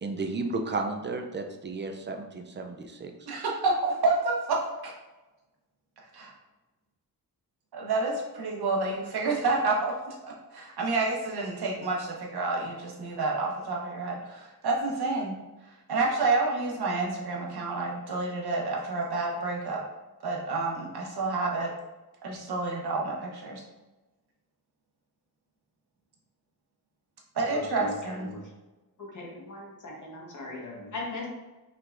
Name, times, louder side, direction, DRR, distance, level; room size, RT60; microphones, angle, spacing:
voice 1, 0.0-3.1, right 3 dB, 30° right, 4 dB, 0.4 m, -33 dB
voice 2, 3.2-4.6 4.8-4.9 6.2-6.3 7.7-15.3 15.9-19.8 20.2-21.7 22.2-23.6 27.3-28.3, right 3 dB, 80° right, -2 dB, 1.2 m, -29 dB
voice 3, 27.5-27.9 28.2-28.4 29.1-31.3, left 2 dB, 50° left, -2 dB, 1.3 m, -39 dB
5.5 x 3.7 x 2.5 m, 1.1 s
wide cardioid pair, 170°, 38 cm